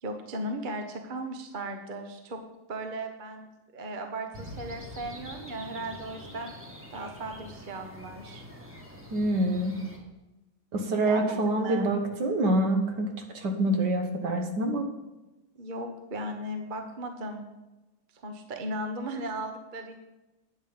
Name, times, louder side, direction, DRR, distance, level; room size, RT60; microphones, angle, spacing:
voice 1, 0.0-2.4 2.7-3.5 3.7-6.5 6.9-8.4 11.0-11.9 15.5-17.5 18.1-20.0, right 1 dB, 35° right, 5 dB, 0.8 m, -36 dB
sound 1, 4.3-10.0, left 1 dB, 5° right, 1.5 m, -45 dB
voice 2, 9.1-9.8 10.7-14.9, right 1 dB, 60° right, 5 dB, 1.6 m, -26 dB
9.4 x 8.6 x 5.4 m, 1.0 s
omnidirectional pair, 2.3 m